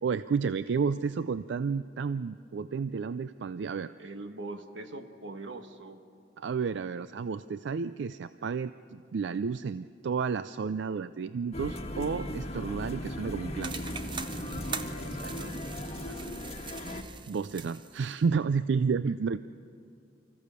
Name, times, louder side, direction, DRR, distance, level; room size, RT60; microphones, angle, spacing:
voice 1, 0.0-3.9 6.4-13.9 17.3-19.4, right 5 dB, 70° right, 13 dB, 0.4 m, -31 dB
voice 2, 4.0-6.0 15.0-15.5 16.1-16.2, right 2 dB, 90° right, 7 dB, 1.3 m, -42 dB
sound 1, 11.5-17.0, left 1 dB, 35° left, 1.4 m, -37 dB
sound 2, 13.6-18.2, right 5 dB, 25° right, 0.6 m, -42 dB
25.0 x 15.0 x 6.9 m, 2.5 s
head